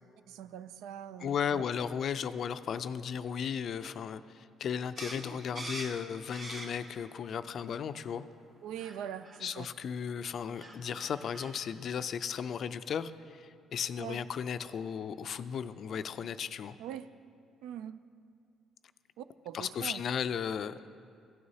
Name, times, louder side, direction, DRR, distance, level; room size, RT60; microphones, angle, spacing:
voice 1, 0.3-1.6 8.6-9.7 14.0-14.2 16.8-17.1 17.6-18.0 19.2-20.0, right 10 dB, 85° right, 13 dB, 0.3 m, -42 dB
voice 2, 1.2-8.3 9.4-16.8 19.5-20.8, left 7 dB, 60° left, 12 dB, 0.3 m, -35 dB
sound 1, 5.0-7.0 7.4-8.1 8.8-9.0 9.2-9.4 10.2-10.3 10.5-11.5, right 2 dB, 60° right, 1.9 m, -44 dB
15.5 x 9.4 x 2.8 m, 2.3 s
cardioid pair, 90°, 0 cm